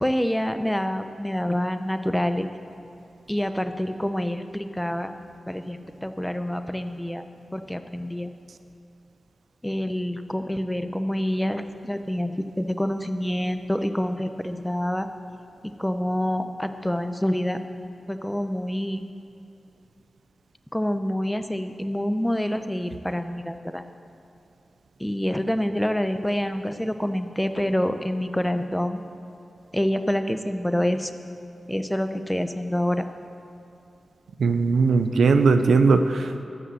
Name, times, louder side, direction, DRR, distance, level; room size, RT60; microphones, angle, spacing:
voice 1, 0.0-2.5 3.3-5.1 5.5-7.3 7.5-8.3 9.6-15.1 15.6-17.6 18.1-19.0 20.7-23.8 25.0-29.0 29.7-31.1 31.7-33.0, equal, 10° left, 9 dB, 0.7 m, -27 dB
voice 2, 34.4-36.4, right 4 dB, 85° right, 8 dB, 0.5 m, -19 dB
12.5 x 5.5 x 7.6 m, 2.6 s
cardioid pair, 50°, 0 cm